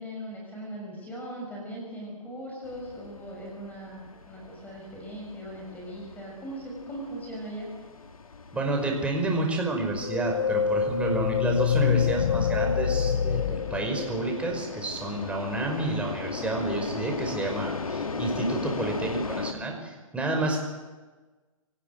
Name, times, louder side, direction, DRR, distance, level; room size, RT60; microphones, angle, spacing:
voice 1, 0.0-7.7, right 1 dB, 10° left, -1 dB, 6.5 m, -39 dB
sound 1, 2.6-19.5, left 4 dB, 80° left, 2.0 m, -39 dB
voice 2, 8.5-20.6, right 2 dB, 5° right, 1 dB, 5.4 m, -30 dB
sound 2, 10.0-14.7, left 7 dB, 60° left, 0.7 m, -26 dB
25.5 x 19.0 x 7.9 m, 1.3 s
figure-of-eight pair, 130°, 18 cm